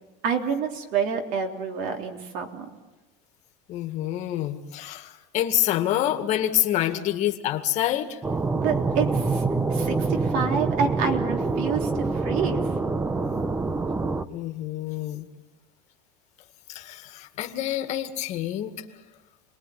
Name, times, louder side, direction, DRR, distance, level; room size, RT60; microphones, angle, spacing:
voice 1, 0.2-2.7 8.6-9.4 9.7-12.7, right 6 dB, 55° right, 3 dB, 3.6 m, -28 dB
voice 2, 3.7-8.2 14.3-15.3 16.7-18.8, left 12 dB, 45° left, 7 dB, 2.0 m, -27 dB
sound 1, 8.2-14.2, right 3 dB, 10° right, 0.8 m, -26 dB
29.0 x 20.5 x 9.4 m, 1.1 s
supercardioid pair, 150°, 17 cm